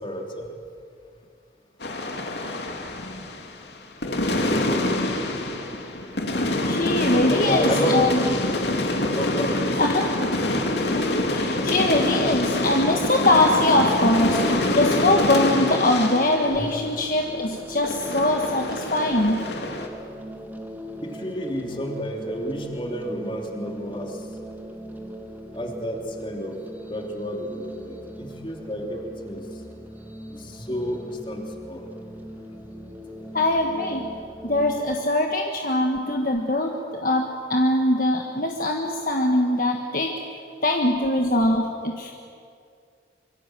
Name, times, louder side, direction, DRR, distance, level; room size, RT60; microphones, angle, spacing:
voice 1, 0.0-0.5 7.1-8.4 9.0-9.7 16.6-16.7 21.0-24.1 25.5-26.5 26.9-29.4 30.3-31.8, equal, 25° left, 2 dB, 3.0 m, -30 dB
sound 1, 1.8-3.7 4.0-17.5 17.8-19.9, left 1 dB, 70° left, 2.7 m, -25 dB
voice 2, 6.6-8.2 9.8-10.1 10.9-19.5 33.3-34.0 34.4-40.2 40.6-42.1, left 1 dB, 50° left, 2 dB, 1.5 m, -22 dB
sound 2, 15.0-34.8, equal, 10° right, 1.7 m, -40 dB
25.5 x 24.0 x 7.7 m, 2.4 s
head